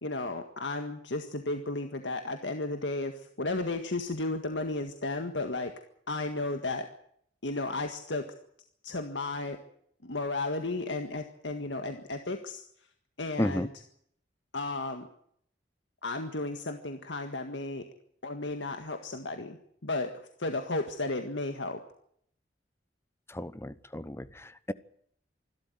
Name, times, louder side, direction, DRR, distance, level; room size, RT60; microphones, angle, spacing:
voice 1, 0.0-5.7 6.1-6.9 7.4-8.3 8.8-9.6 10.0-12.6 13.2-13.7 14.5-15.1 16.0-17.8 18.2-20.1 20.4-21.8, left 2 dB, 90° left, 6 dB, 1.8 m, -33 dB
voice 2, 23.3-24.7, left 1 dB, 15° left, 16 dB, 0.9 m, -33 dB
26.0 x 12.5 x 9.2 m, 0.69 s
head